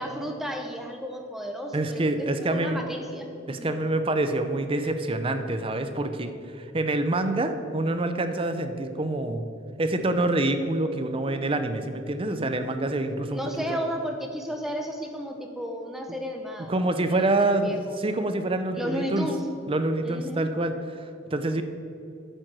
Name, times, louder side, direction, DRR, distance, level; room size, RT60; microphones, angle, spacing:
voice 1, 0.0-2.0 2.4-3.7 13.3-18.0 18.7-19.4 20.0-20.4, equal, ahead, 2 dB, 0.9 m, -33 dB
voice 2, 1.7-2.8 3.5-9.5 9.8-13.4 13.7-13.8 16.1-16.2 16.7-19.3 19.7-21.6, right 2 dB, 25° right, 8 dB, 0.6 m, -26 dB
8.9 x 7.6 x 6.2 m, 2.7 s
head